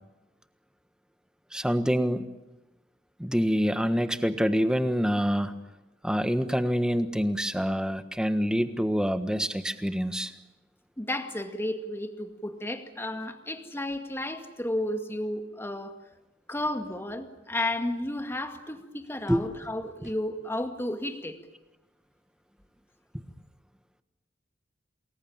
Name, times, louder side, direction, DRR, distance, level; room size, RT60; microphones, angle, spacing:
voice 1, 1.5-2.2 3.2-5.5 6.0-10.3 19.3-19.5, equal, 5° right, 10 dB, 1.4 m, -26 dB
voice 2, 11.0-15.9 16.5-21.4, left 1 dB, 15° left, 6 dB, 2.2 m, -32 dB
28.5 x 21.0 x 8.9 m, 1.0 s
head